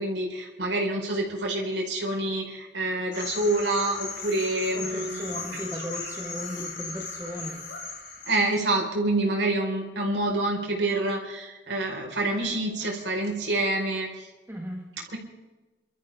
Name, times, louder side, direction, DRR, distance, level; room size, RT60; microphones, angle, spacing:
voice 1, 0.0-5.4 8.3-14.1 15.1-15.2, right 2 dB, 70° right, 0 dB, 4.6 m, -27 dB
sound 1, 3.1-8.6, left 4 dB, 75° left, 5.5 m, -37 dB
voice 2, 4.7-7.6 14.5-14.9, equal, 10° right, 0 dB, 1.5 m, -36 dB
28.5 x 13.5 x 3.7 m, 1.2 s
head